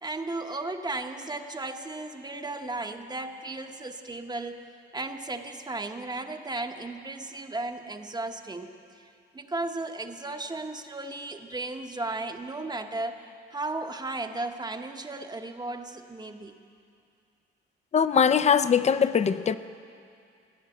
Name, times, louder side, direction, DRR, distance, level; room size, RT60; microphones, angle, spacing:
voice 1, 0.0-4.6 4.9-13.2 13.5-16.6, right 2 dB, 20° right, 5 dB, 0.9 m, -35 dB
voice 2, 17.9-19.6, left 7 dB, 35° left, 12 dB, 0.5 m, -21 dB
17.0 x 9.7 x 8.0 m, 2.4 s
cardioid pair, 90°, 20 cm